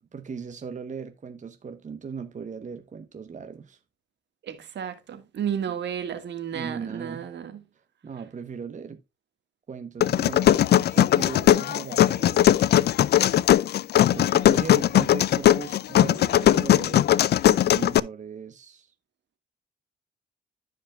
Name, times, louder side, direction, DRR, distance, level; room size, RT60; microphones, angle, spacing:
voice 1, 0.1-3.8 6.5-7.3 8.0-9.0 9.7-12.6 14.1-17.1 17.6-18.9, right 6 dB, 40° right, 1.0 m, -38 dB
voice 2, 4.4-7.6, right 8 dB, 70° right, 1.8 m, -32 dB
sound 1, 10.0-18.0, left 11 dB, 60° left, 0.4 m, -19 dB
14.5 x 5.1 x 2.3 m
supercardioid pair, 60°, 19 cm